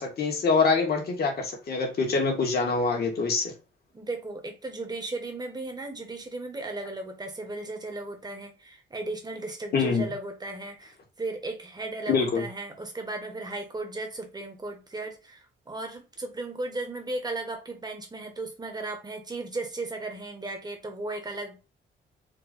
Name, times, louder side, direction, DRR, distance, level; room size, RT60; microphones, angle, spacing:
voice 1, 0.0-3.5 9.7-10.1 12.1-12.5, left 4 dB, 55° left, 2.0 m, -25 dB
voice 2, 3.9-21.6, right 2 dB, 20° right, 1.4 m, -36 dB
4.7 x 2.5 x 4.1 m
cardioid pair, 90°, 20 cm